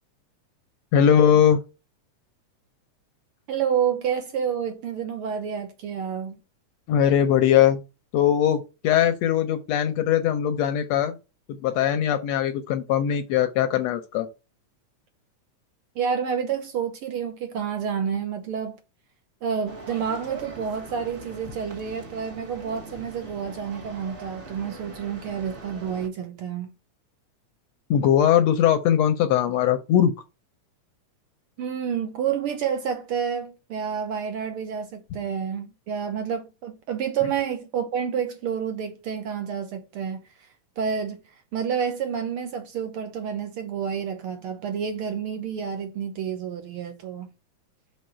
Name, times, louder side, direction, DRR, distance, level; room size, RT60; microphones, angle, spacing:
voice 1, 0.9-1.6 6.9-7.8 8.1-11.1 11.6-14.3 27.9-30.1, left 9 dB, 75° left, 1.6 m, -20 dB
voice 2, 3.5-6.4 15.9-18.8 19.4-26.7 31.6-40.2 40.8-41.2 41.5-47.3, right 7 dB, 70° right, 1.3 m, -29 dB
sound 1, 19.6-26.1, right 2 dB, 35° right, 0.9 m, -42 dB
6.3 x 5.0 x 4.4 m
omnidirectional pair, 3.5 m